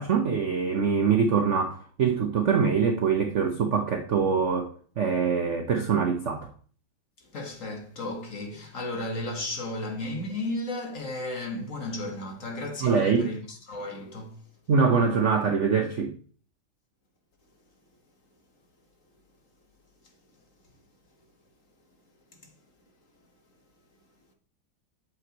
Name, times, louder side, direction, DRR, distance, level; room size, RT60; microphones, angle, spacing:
voice 1, 0.0-6.5 12.8-13.3 14.7-16.1, right 5 dB, 60° right, 0.7 m, -24 dB
voice 2, 7.3-14.4, left 2 dB, 40° left, 1.7 m, -34 dB
8.0 x 7.7 x 3.0 m
omnidirectional pair, 2.3 m